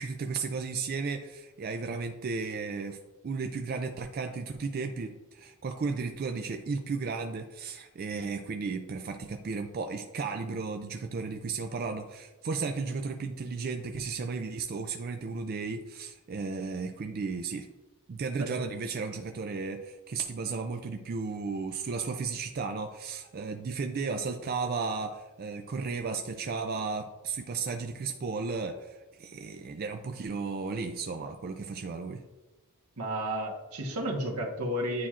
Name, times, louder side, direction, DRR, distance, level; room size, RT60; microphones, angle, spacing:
voice 1, 0.0-3.0 3.2-17.7 18.1-32.2, right 4 dB, 45° right, 5 dB, 0.3 m, -34 dB
voice 2, 33.0-35.1, equal, 85° right, 1 dB, 1.2 m, -32 dB
9.4 x 4.3 x 2.4 m, 1.2 s
head